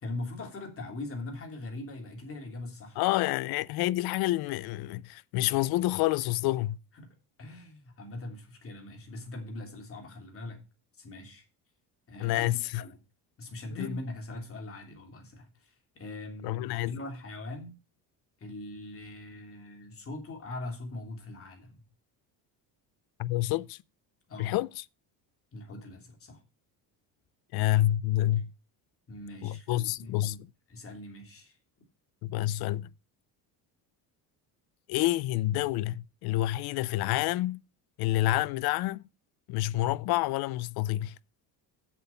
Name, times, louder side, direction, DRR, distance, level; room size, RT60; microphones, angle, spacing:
voice 1, 0.0-3.0 7.0-10.6 11.0-11.4 12.1-13.0 13.4-17.8 18.4-21.8 24.3-24.5 25.5-26.4 29.1-30.4 30.7-31.6, left 2 dB, 35° left, 2.9 m, -41 dB
voice 2, 3.0-6.8 12.2-12.8 13.7-14.0 16.4-16.9 23.2-23.8 24.4-24.7 27.5-28.5 29.4-30.4 32.2-32.9 34.9-37.6 38.0-39.0 39.5-41.1, left 16 dB, 65° left, 0.5 m, -28 dB
7.5 x 7.1 x 5.7 m
cardioid pair, 125°, 41 cm